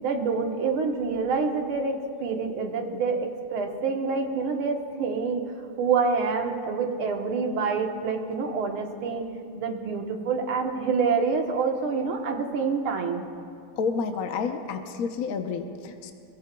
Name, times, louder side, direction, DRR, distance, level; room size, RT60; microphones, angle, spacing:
voice 1, 0.0-5.4 5.8-9.2 9.6-13.2, right 5 dB, 75° right, 3 dB, 2.0 m, -27 dB
voice 2, 13.8-16.1, left 5 dB, 60° left, 5 dB, 0.9 m, -30 dB
23.0 x 21.0 x 2.3 m, 2.6 s
omnidirectional pair, 2.4 m